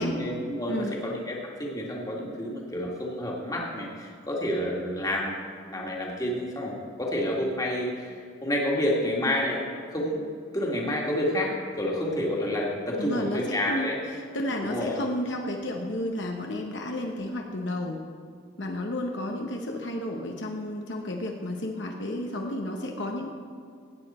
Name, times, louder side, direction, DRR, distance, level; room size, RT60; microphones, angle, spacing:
voice 1, 0.0-5.3 5.7-10.2 10.5-14.0 14.6-15.0, left 1 dB, 20° left, -2 dB, 1.9 m, -29 dB
voice 2, 13.0-13.9 14.3-18.0 18.6-23.3, left 1 dB, 65° left, 2 dB, 1.0 m, -32 dB
16.5 x 9.0 x 4.3 m, 2.3 s
head